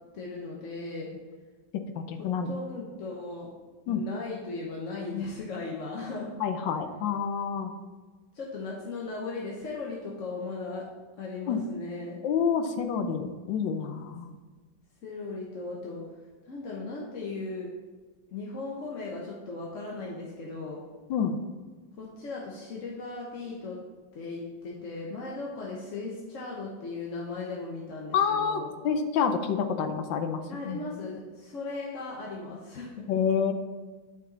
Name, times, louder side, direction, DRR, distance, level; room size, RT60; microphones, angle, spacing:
voice 1, 0.1-1.1 2.5-3.5 3.9-6.3 8.3-10.8 11.2-12.2 15.0-16.0 16.5-17.7 18.3-20.8 22.0-23.8 24.1-28.7 30.5-33.0, left 3 dB, 50° left, -3 dB, 1.1 m, -37 dB
voice 2, 2.1-2.5 3.9-4.0 6.4-7.7 11.5-11.6 12.2-14.3 21.1-21.4 28.1-30.8 33.1-33.5, left 7 dB, 80° left, 8 dB, 1.4 m, -28 dB
8.8 x 5.2 x 4.0 m, 1.4 s
omnidirectional pair, 2.1 m